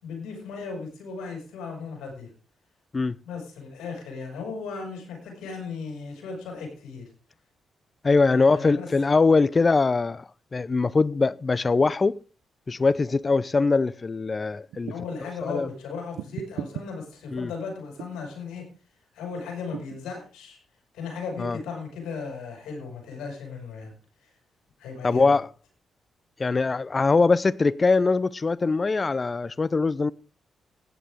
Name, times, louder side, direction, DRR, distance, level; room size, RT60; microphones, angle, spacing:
voice 1, 0.0-2.3 3.2-7.1 8.3-8.9 14.9-18.6 19.1-20.6 20.9-23.9 24.8-25.3, left 5 dB, 80° left, 5.6 m, -36 dB
voice 2, 8.0-12.2 12.7-14.9 15.4-15.7 17.3-17.5 21.4-21.6 25.0-25.5 26.4-30.1, left 4 dB, 40° left, 0.5 m, -22 dB
sound 1, 14.7-15.2 16.2-16.9 18.0-18.3 19.7-20.0, right 11 dB, 85° right, 0.6 m, -37 dB
15.0 x 10.0 x 3.6 m
supercardioid pair, 50°, 0 cm